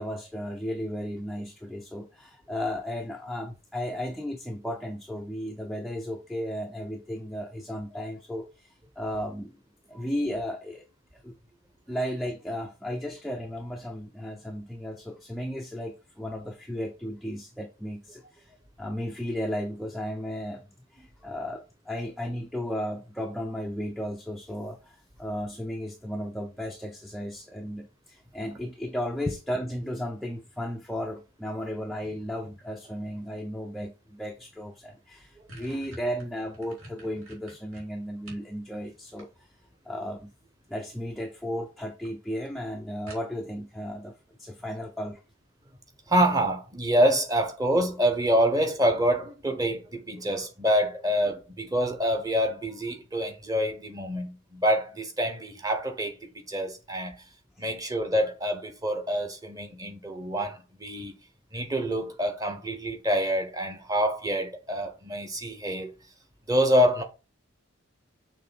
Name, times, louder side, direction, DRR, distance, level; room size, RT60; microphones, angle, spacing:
voice 1, 0.0-9.6 9.9-10.8 11.1-11.4 11.9-39.5 39.9-40.3 40.7-45.2 57.6-57.7, equal, ahead, 0.5 m, -35 dB
sound 1, 34.6-34.7 35.0-38.5 38.9-39.8 40.9-41.3 41.6-41.7 42.0-42.1 42.4-42.5 43.1-43.6, right 1 dB, 70° right, 3.1 m, -48 dB
voice 2, 46.1-56.2 56.5-57.1 57.6-61.1 61.5-65.9 66.5-67.0, equal, 15° right, 1.1 m, -26 dB
6.7 x 3.2 x 5.4 m
head